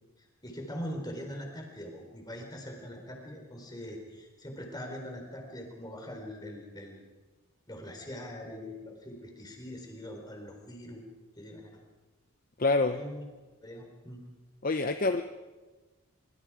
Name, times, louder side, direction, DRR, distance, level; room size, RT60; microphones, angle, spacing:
voice 1, 0.2-7.0 7.7-11.0 11.4-11.8 12.9-13.2 13.6-14.2, equal, 20° left, 2 dB, 4.1 m, -42 dB
voice 2, 12.6-13.0 14.6-15.2, left 3 dB, 40° left, 8 dB, 0.7 m, -26 dB
25.0 x 24.5 x 5.0 m, 1.2 s
head